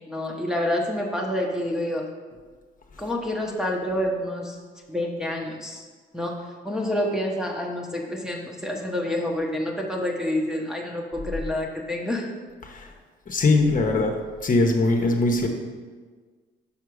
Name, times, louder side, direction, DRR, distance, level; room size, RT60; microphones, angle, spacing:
voice 1, 0.0-2.1 3.0-4.6 4.9-5.9 6.1-12.3, left 1 dB, 5° right, -2 dB, 1.0 m, -28 dB
voice 2, 13.3-14.1 14.4-15.5, left 2 dB, 45° left, 2 dB, 1.0 m, -21 dB
5.8 x 4.7 x 6.3 m, 1.5 s
cardioid pair, 90°, 20 cm